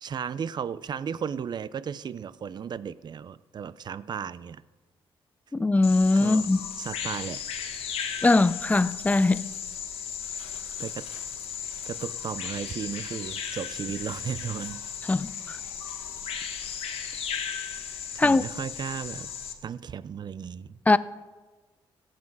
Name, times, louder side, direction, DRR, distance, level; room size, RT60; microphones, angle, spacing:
voice 1, 0.0-4.6 6.2-6.4 6.8-7.4 10.8-11.1 11.9-14.8 18.1-19.3 19.6-20.8, right 7 dB, 45° right, 0.5 m, -35 dB
voice 2, 5.5-6.6 8.2-9.4 15.1-15.6 18.2-18.4 20.9-21.0, left 3 dB, 15° left, 0.4 m, -21 dB
Bird vocalization bird call bird song, 5.8-19.5, left 8 dB, 85° left, 1.3 m, -36 dB
16.5 x 7.5 x 4.7 m
cardioid pair, 80°, 10 cm